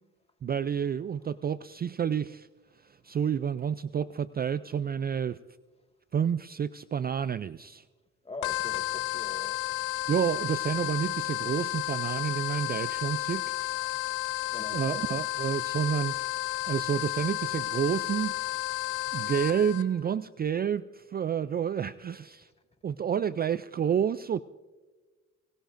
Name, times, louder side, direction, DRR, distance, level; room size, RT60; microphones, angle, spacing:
voice 1, 0.4-2.5 2.8-5.4 6.1-7.8 10.1-13.7 14.7-16.3 16.6-18.4 19.1-22.5 22.8-24.4, right 8 dB, 30° right, 0.4 m, -29 dB
voice 2, 8.3-9.6 13.7-13.9 14.5-15.0, left 2 dB, 20° left, 1.9 m, -43 dB
sound 1, 8.4-19.8, left 18 dB, 85° left, 0.7 m, -32 dB
24.5 x 19.0 x 2.6 m
cardioid pair, 90°, 30 cm